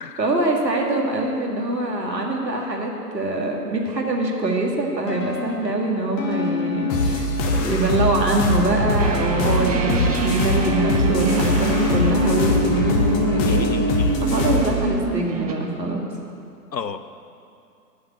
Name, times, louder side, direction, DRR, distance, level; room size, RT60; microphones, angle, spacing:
voice 1, 0.2-16.0, right 2 dB, 80° right, 0 dB, 2.1 m, -24 dB
sound 1, 5.1-14.0, left 4 dB, 50° left, 2.0 m, -29 dB
sound 2, 6.9-14.8, left 1 dB, 25° left, 1.0 m, -23 dB
sound 3, 9.0-15.5, right 2 dB, 25° right, 0.6 m, -25 dB
voice 2, 13.5-14.3 16.7-17.0, left 6 dB, 90° left, 11 dB, 0.7 m, -32 dB
9.1 x 7.1 x 8.4 m, 2.6 s
figure-of-eight pair, 120°, 49 cm